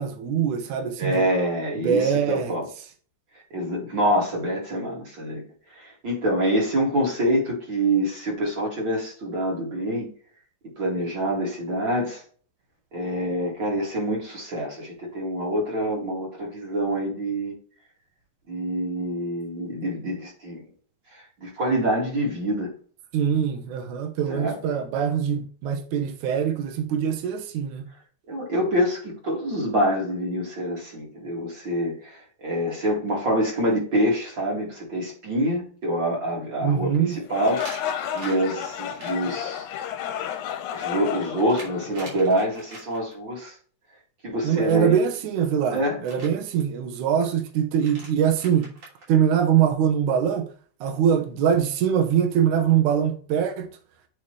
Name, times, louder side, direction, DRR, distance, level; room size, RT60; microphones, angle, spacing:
voice 1, 0.0-1.2 1.8-2.5 23.1-27.8 36.6-37.2 44.4-48.7 49.1-50.5 50.8-53.7, right 8 dB, 75° right, 2.4 m, -23 dB
voice 2, 1.0-2.6 3.5-5.4 5.8-10.1 10.8-12.2 12.9-17.5 18.5-20.6 21.4-22.7 24.3-24.6 28.3-32.2 32.4-39.7 40.7-43.5 44.2-45.0 45.7-46.0, right 1 dB, 40° right, 2.6 m, -26 dB
sound 1, 32.5-32.8 33.1-33.2 33.7-33.8 34.0-34.2 37.4-39.1 40.3-43.1 44.6-45.2 46.0-46.3 47.5-47.6 47.7-49.1, right 2 dB, 55° right, 4.0 m, -43 dB
sound 2, 37.2-42.5, left 9 dB, 80° left, 2.1 m, -32 dB
8.7 x 3.7 x 3.2 m
omnidirectional pair, 3.5 m